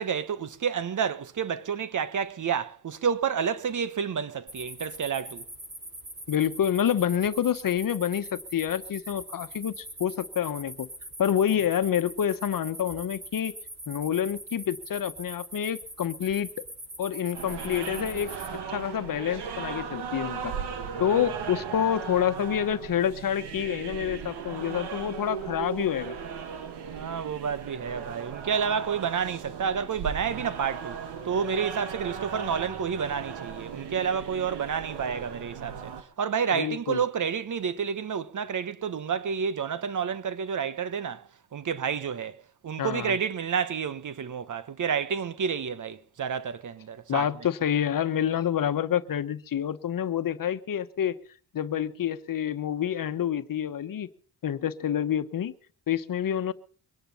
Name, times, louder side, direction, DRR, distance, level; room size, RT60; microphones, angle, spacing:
voice 1, 0.0-5.4 21.0-21.3 26.9-31.0 31.2-47.3, right 7 dB, 50° right, 1.2 m, -30 dB
sound 1, 4.5-18.5, right 1 dB, 30° right, 6.5 m, -43 dB
voice 2, 6.3-10.9 11.2-13.5 13.9-16.5 17.0-18.3 18.7-20.5 21.0-26.2 36.5-37.0 42.8-43.2 47.1-51.2 51.5-54.1 54.4-55.5 55.9-56.5, left 9 dB, 55° left, 1.2 m, -28 dB
sound 2, 17.3-36.0, right 7 dB, 85° right, 2.2 m, -37 dB
23.5 x 10.0 x 5.6 m
cardioid pair, 80°, 39 cm